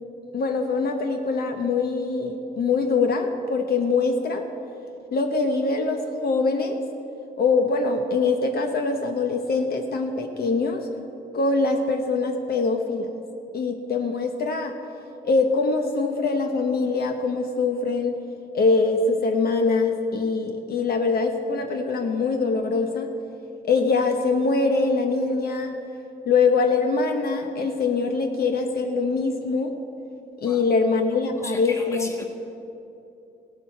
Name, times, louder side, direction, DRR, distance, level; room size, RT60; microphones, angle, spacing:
voice 1, 0.3-4.4 5.1-6.8 7.4-10.9 11.3-13.1 13.5-14.7 15.2-18.2 18.5-23.1 23.7-25.7 26.3-29.7 30.4-32.2, left 4 dB, 60° left, 4 dB, 0.9 m, -23 dB
voice 2, 31.4-32.2, left 2 dB, 15° left, 2 dB, 1.4 m, -36 dB
16.5 x 11.5 x 4.6 m, 2.8 s
wide cardioid pair, 140°, 18 cm